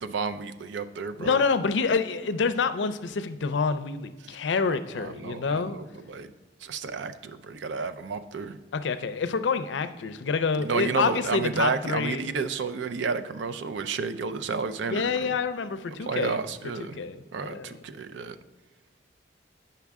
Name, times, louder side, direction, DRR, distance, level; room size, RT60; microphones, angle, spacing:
voice 1, 0.0-1.4 5.0-6.3 6.6-8.6 10.6-15.3 16.1-17.0 17.3-18.4, right 5 dB, 90° right, 10 dB, 0.4 m, -31 dB
voice 2, 1.2-5.8 8.7-12.3 14.9-16.4 16.8-17.8, left 5 dB, 85° left, 11 dB, 0.4 m, -27 dB
8.3 x 5.7 x 3.5 m, 1.2 s
head